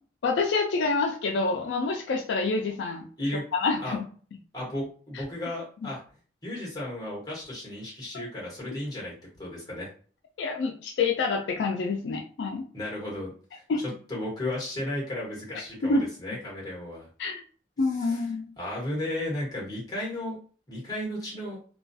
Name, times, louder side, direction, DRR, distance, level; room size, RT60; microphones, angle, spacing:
voice 1, 0.2-3.1 3.5-4.0 10.4-12.6 13.7-13.8 15.9-16.0 17.2-17.4 17.8-18.5, left 4 dB, 80° left, 2 dB, 0.3 m, -27 dB
voice 2, 4.5-6.0 6.4-9.9 12.7-13.6 14.1-17.1 17.9-18.3 18.6-20.4 20.7-21.6, left 1 dB, 20° left, -4 dB, 1.2 m, -34 dB
2.3 x 2.2 x 2.6 m, 0.42 s
head